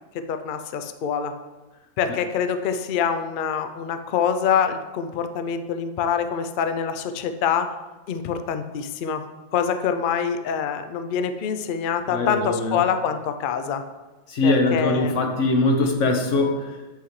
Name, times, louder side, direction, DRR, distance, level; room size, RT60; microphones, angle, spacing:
voice 1, 0.3-1.3 2.0-7.7 8.1-9.2 9.5-13.8 14.4-15.1, left 7 dB, 90° left, 8 dB, 0.4 m, -25 dB
voice 2, 12.1-12.8 14.3-16.8, left 2 dB, 60° left, 3 dB, 1.2 m, -22 dB
8.4 x 5.8 x 3.2 m, 1.1 s
omnidirectional pair, 1.5 m